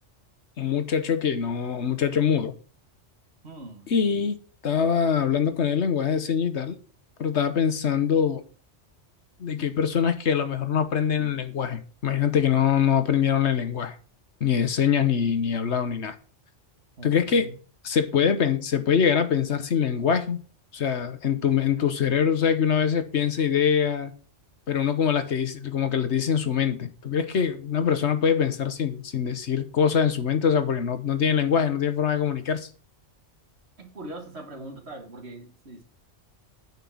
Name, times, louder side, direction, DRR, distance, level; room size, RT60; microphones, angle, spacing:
voice 1, 0.6-2.5 3.9-4.4 4.6-6.8 7.2-8.4 9.4-14.0 14.4-16.2 17.0-17.5 17.8-20.4 20.7-24.1 24.7-32.7, left 7 dB, 65° left, 1.3 m, -24 dB
voice 2, 3.4-3.9 17.0-17.5 33.8-35.8, right 1 dB, 60° right, 2.1 m, -41 dB
9.2 x 4.6 x 7.1 m
omnidirectional pair, 1.2 m